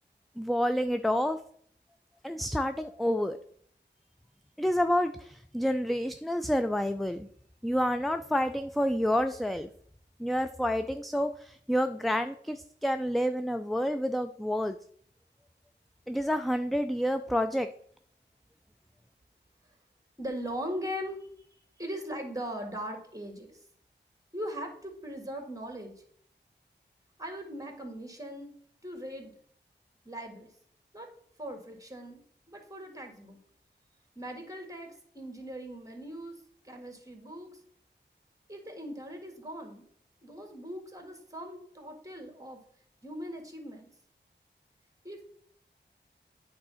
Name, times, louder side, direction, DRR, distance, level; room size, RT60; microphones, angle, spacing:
voice 1, 0.4-1.4 2.2-3.4 4.6-7.3 7.6-9.7 10.2-14.8 16.1-17.7, equal, ahead, 8 dB, 0.3 m, -29 dB
voice 2, 20.2-23.6 24.3-25.9 27.2-28.5 28.8-29.3 30.1-30.5 30.9-31.1 31.4-32.2 32.5-33.4 34.2-36.4 36.6-37.5 38.5-39.9 40.2-42.6 43.0-43.9 45.0-45.2, equal, 15° right, 3 dB, 1.9 m, -40 dB
8.7 x 3.7 x 5.6 m, 0.62 s
wide cardioid pair, 55°, 19 cm